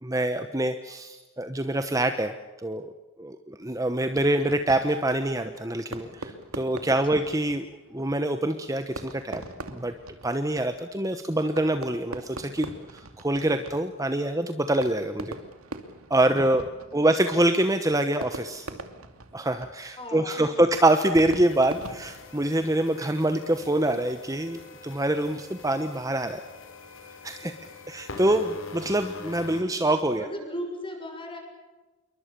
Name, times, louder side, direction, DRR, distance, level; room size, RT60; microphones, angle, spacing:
voice 1, 0.0-2.9 3.2-7.6 7.9-9.4 9.7-9.9 10.2-15.4 16.1-16.6 16.9-18.7 19.3-26.4 27.2-27.5 27.9-30.3, right 1 dB, 15° right, 8 dB, 1.1 m, -25 dB
Fireworks, 4.1-22.9, right 2 dB, 70° right, 2.5 m, -43 dB
voice 2, 20.0-20.5 27.4-27.7 30.2-31.4, equal, 20° left, 4 dB, 6.6 m, -37 dB
sound 1, 21.4-29.6, left 3 dB, 60° left, 5.2 m, -44 dB
28.0 x 23.0 x 6.9 m, 1.2 s
head